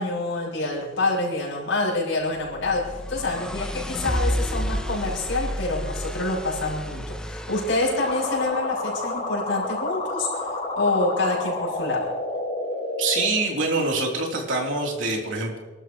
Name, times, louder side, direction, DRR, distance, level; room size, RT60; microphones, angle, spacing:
voice 1, 0.0-12.2, left 2 dB, 75° left, -4 dB, 6.3 m, -27 dB
sound 1, 2.4-8.5, equal, 5° left, 0.6 m, -30 dB
sound 2, 8.0-13.3, left 2 dB, 30° left, 4.9 m, -30 dB
voice 2, 13.0-15.6, right 3 dB, 80° right, 0 dB, 3.3 m, -25 dB
28.5 x 12.5 x 3.1 m, 1.3 s
head